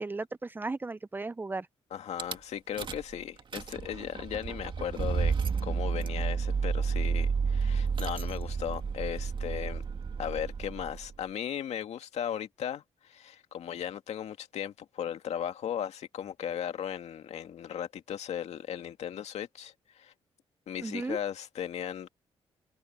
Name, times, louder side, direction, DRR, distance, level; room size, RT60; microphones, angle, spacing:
voice 1, 0.0-1.7 20.8-21.2, right 3 dB, 20° right, 0.7 m, -35 dB
voice 2, 1.9-5.3 5.6-9.8 10.2-20.1 20.7-22.1, left 9 dB, 75° left, 2.2 m, -37 dB
Rattle / Car / Engine starting, 2.2-2.4 2.8-3.1 3.4-11.1, right 5 dB, 45° right, 2.3 m, -31 dB
cardioid pair, 100°, 11 cm